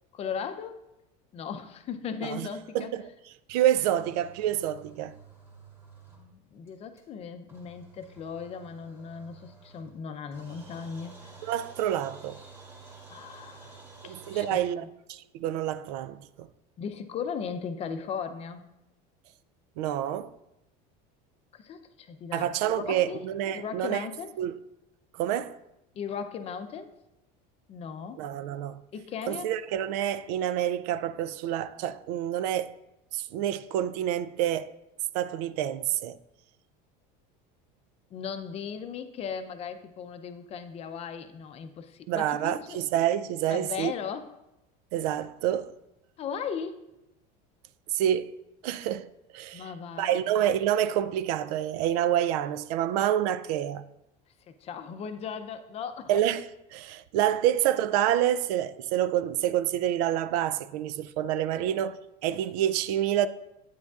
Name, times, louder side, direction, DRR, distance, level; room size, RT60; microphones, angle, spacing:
voice 1, 0.1-0.8 1.3-2.9 6.1-11.3 13.1-13.8 14.0-14.9 16.8-18.7 21.5-23.3 23.5-24.3 26.0-26.9 27.7-28.2 28.9-29.6 38.1-42.8 43.5-44.3 46.2-46.9 49.5-50.3 54.5-56.1 61.5-61.8, left 6 dB, 30° left, 0.5 m, -37 dB
voice 2, 3.5-5.1 11.4-12.4 14.0-16.5 19.8-20.3 22.3-24.1 24.4-24.6 25.2-25.6 28.2-28.8 29.3-32.7 33.1-34.7 35.1-36.2 42.1-43.9 44.9-45.7 47.9-48.3 48.6-49.1 49.3-49.6 50.0-53.8 56.1-62.0 62.2-63.3, right 11 dB, 80° right, 0.4 m, -28 dB
sound 1, 3.8-6.4 6.7-6.8 7.0-7.1 7.5-10.0 10.3-14.6, right 4 dB, 10° right, 1.7 m, -51 dB
9.6 x 9.1 x 2.4 m
cardioid pair, 150°, 20 cm